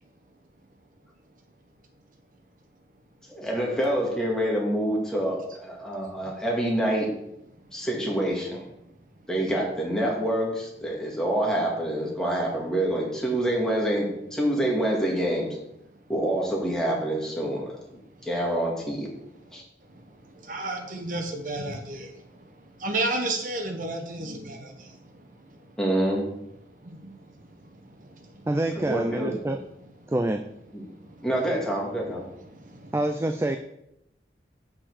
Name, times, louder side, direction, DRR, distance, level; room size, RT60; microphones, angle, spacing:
voice 1, 3.3-7.1 7.7-8.6 9.3-15.5 16.1-17.8 18.2-19.1 19.5-19.6 25.8-26.2 28.7-29.3 30.7-30.8 31.2-32.2, right 1 dB, 5° left, -3 dB, 2.0 m, -26 dB
voice 2, 20.4-22.1 22.8-24.9 26.8-27.1 32.6-32.9, right 2 dB, 45° right, 4 dB, 1.1 m, -31 dB
voice 3, 28.5-29.6 30.1-30.4 32.9-33.6, right 1 dB, 15° right, 7 dB, 0.3 m, -26 dB
6.5 x 5.7 x 7.1 m, 0.82 s
head